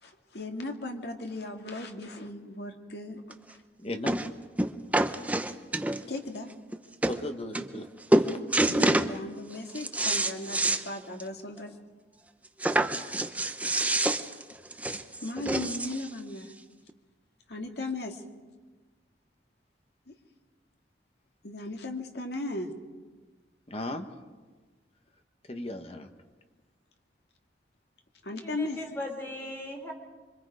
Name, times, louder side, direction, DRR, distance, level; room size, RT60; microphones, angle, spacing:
voice 1, 0.0-3.2 5.9-6.5 8.6-11.8 14.9-16.5 17.5-18.2 20.1-20.2 21.4-22.7 28.2-28.8, left 2 dB, 65° left, 3 dB, 2.3 m, -37 dB
sound 1, 3.3-3.4 4.1-4.3 4.6-6.2 6.7-6.8 7.0-7.2 7.5-7.9 8.1-9.1 9.5-10.8 11.2-11.3 11.6-11.7 12.6-16.1 16.9-17.0, right 1 dB, 10° right, 0.8 m, -27 dB
voice 2, 3.8-4.2 7.1-7.9 8.1-8.3 23.7-24.1 25.5-26.1, left 1 dB, 35° left, 6 dB, 1.5 m, -36 dB
voice 3, 28.4-29.9, left 1 dB, 15° left, 1 dB, 3.5 m, -38 dB
26.0 x 24.5 x 5.0 m, 1.3 s
head